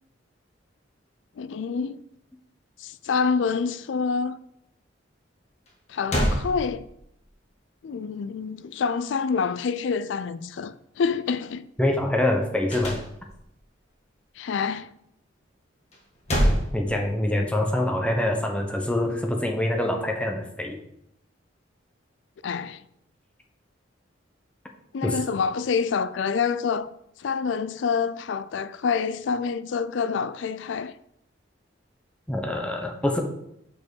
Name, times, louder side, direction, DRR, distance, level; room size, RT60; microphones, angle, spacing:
voice 1, 1.4-2.0 2.8-4.4 5.9-6.9 7.8-11.7 14.4-14.9 22.4-22.8 24.9-26.9 27.2-30.9, left 5 dB, 70° left, 0.4 m, -27 dB
sound 1, 5.7-5.8 6.1-7.2 12.7-13.6 15.9-17.5, equal, 35° left, 1.5 m, -26 dB
voice 2, 11.8-13.0 16.4-20.8 25.0-25.1 32.3-33.2, left 1 dB, 5° left, 0.9 m, -25 dB
5.6 x 4.6 x 6.3 m
head